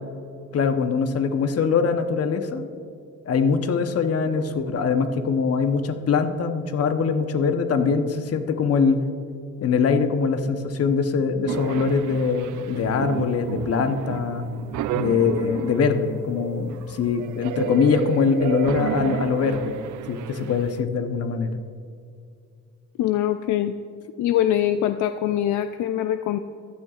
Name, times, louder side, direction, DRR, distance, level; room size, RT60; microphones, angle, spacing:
voice 1, 0.5-2.7 3.3-9.0 9.6-14.4 14.9-21.5, left 5 dB, 55° left, 8 dB, 1.0 m, -23 dB
sound 1, 11.5-20.8, right 10 dB, 75° right, 0.5 m, -31 dB
voice 2, 23.0-23.7 24.2-26.4, left 11 dB, 75° left, 9 dB, 0.5 m, -23 dB
15.0 x 11.0 x 2.5 m, 2.4 s
cardioid pair, 90°, 30 cm